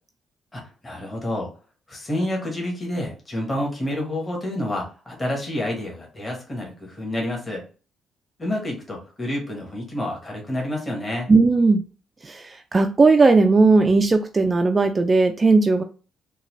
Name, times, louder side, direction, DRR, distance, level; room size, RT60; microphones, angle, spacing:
voice 1, 0.5-1.5 1.9-7.6 8.4-11.3, left 1 dB, 20° left, -1 dB, 1.3 m, -29 dB
voice 2, 11.3-11.8 12.2-15.8, right 3 dB, 30° right, 6 dB, 0.3 m, -17 dB
3.9 x 2.2 x 3.0 m, 0.36 s
cardioid pair, 90°, 0 cm